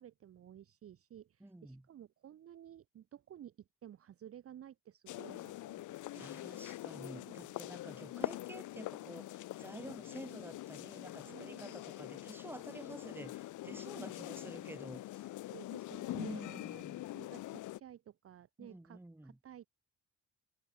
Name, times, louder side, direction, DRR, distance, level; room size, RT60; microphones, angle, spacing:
voice 1, 0.0-6.3 7.1-7.5 9.7-9.9 11.2-11.8 13.9-14.4 15.5-16.8 17.1-19.7, right 10 dB, 50° right, 0.8 m, -55 dB
voice 2, 1.4-1.8 6.1-15.3 16.1-17.1 18.6-19.4, right 1 dB, 5° right, 2.2 m, -50 dB
sound 1, 5.1-17.8, left 16 dB, 80° left, 0.9 m, -44 dB
cardioid pair, 90°, 30 cm